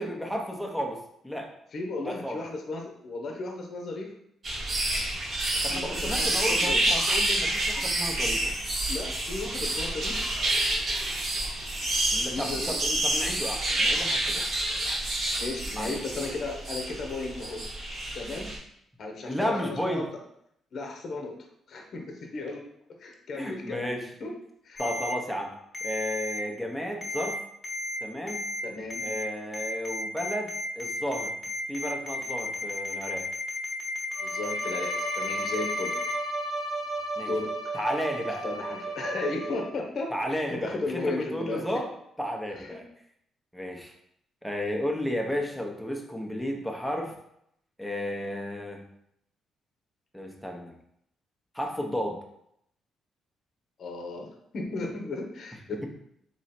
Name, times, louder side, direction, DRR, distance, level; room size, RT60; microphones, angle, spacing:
voice 1, 0.0-1.5 2.0-2.4 5.6-8.5 12.1-14.4 15.7-15.9 19.3-20.1 23.3-24.1 24.8-25.5 25.8-27.4 28.0-28.5 29.0-31.3 31.7-33.3 37.2-37.3 37.7-38.5 40.1-41.9 42.2-42.9 43.5-43.9 44.4-47.1 47.8-48.9 50.1-50.8 51.5-52.2, equal, ahead, 1 dB, 0.9 m, -33 dB
voice 2, 1.7-4.1 5.7-6.8 8.9-10.2 12.3-12.7 15.4-17.6 18.1-18.5 19.0-20.1 20.7-21.3 21.7-22.7 23.0-24.3 24.6-24.8 28.6-29.0 34.2-35.9 37.3-37.7 38.4-41.6 42.5-42.8 53.8-55.9, left 3 dB, 55° left, 2 dB, 0.9 m, -35 dB
sound 1, 4.4-18.6, right 1 dB, 45° right, 1.3 m, -28 dB
Ringtone, 24.8-25.1 25.7-26.4 27.0-27.3 27.6-28.0 28.3-28.6 28.9-29.2 29.5-36.1, left 2 dB, 20° left, 1.2 m, -34 dB
Bowed string instrument, 34.1-39.9, right 2 dB, 80° right, 1.4 m, -34 dB
3.8 x 3.0 x 4.3 m, 0.74 s
cardioid pair, 90°, 0 cm